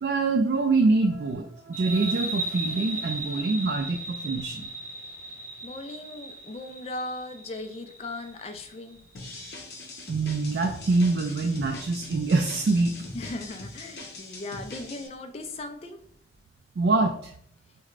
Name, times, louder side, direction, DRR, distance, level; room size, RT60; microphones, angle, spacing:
voice 1, 0.0-4.7 10.1-13.0 16.8-17.3, right 3 dB, 65° right, 3 dB, 0.3 m, -25 dB
sound 1, 1.7-8.9, right 2 dB, 15° right, 1.0 m, -36 dB
voice 2, 5.6-9.0 13.1-16.0, left 2 dB, 35° left, 6 dB, 0.3 m, -38 dB
sound 2, 9.1-15.1, left 2 dB, 65° left, 0.7 m, -42 dB
4.7 x 2.2 x 2.4 m, 0.64 s
head